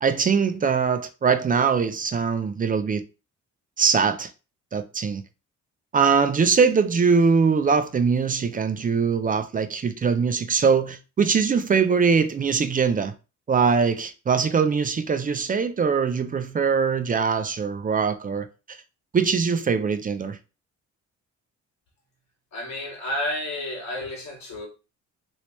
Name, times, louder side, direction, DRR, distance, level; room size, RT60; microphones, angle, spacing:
voice 1, 0.0-3.0 3.8-4.3 4.7-5.2 5.9-13.1 13.5-18.8 19.1-20.4, right 5 dB, 30° right, 0.4 m, -22 dB
voice 2, 22.5-24.7, left 1 dB, 65° left, 1.7 m, -31 dB
3.2 x 3.0 x 2.9 m
cardioid pair, 90°, 30 cm